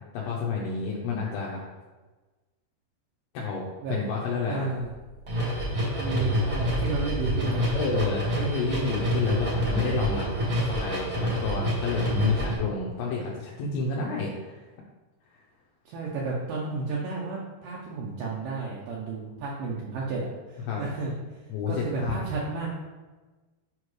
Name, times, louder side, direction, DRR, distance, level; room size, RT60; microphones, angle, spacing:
voice 1, 0.1-1.6 3.3-4.7 7.7-10.3 10.7-14.7 20.7-20.8 21.5-22.1, left 4 dB, 75° left, -3 dB, 2.6 m, -30 dB
voice 2, 4.5-4.9 6.0-7.7 15.9-21.1 21.7-22.7, right 3 dB, 80° right, -4 dB, 2.0 m, -32 dB
sound 1, 4.8-4.9 5.2-12.6, right 1 dB, 60° right, 0.9 m, -27 dB
7.4 x 4.8 x 3.2 m, 1.2 s
omnidirectional pair, 4.9 m